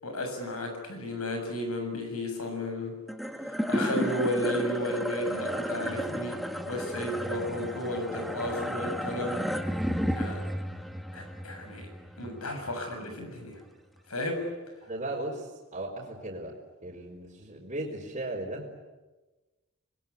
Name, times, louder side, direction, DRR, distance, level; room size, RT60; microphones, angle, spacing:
voice 1, 0.0-3.0 3.7-6.4 6.7-9.5 10.1-10.4 11.1-11.9 12.2-13.6 14.1-14.5, left 1 dB, 90° left, 5 dB, 7.1 m, -33 dB
sound 1, 3.1-13.6, equal, ahead, 1.3 m, -33 dB
voice 2, 14.8-16.5 16.8-18.7, right 1 dB, 30° right, -5 dB, 4.4 m, -36 dB
27.5 x 21.5 x 9.7 m, 1.2 s
head